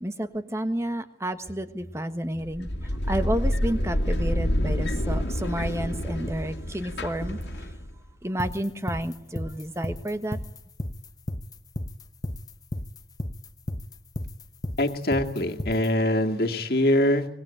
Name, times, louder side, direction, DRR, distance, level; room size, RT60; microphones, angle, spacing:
voice 1, 0.0-7.7 8.2-10.4, right 1 dB, 15° right, 1.4 m, -31 dB
sound 1, 2.4-8.1, equal, 85° left, 2.5 m, -28 dB
sound 2, 8.4-15.9, left 1 dB, 20° left, 0.9 m, -33 dB
voice 2, 14.8-17.3, left 1 dB, 60° left, 2.3 m, -23 dB
25.0 x 19.5 x 8.9 m
head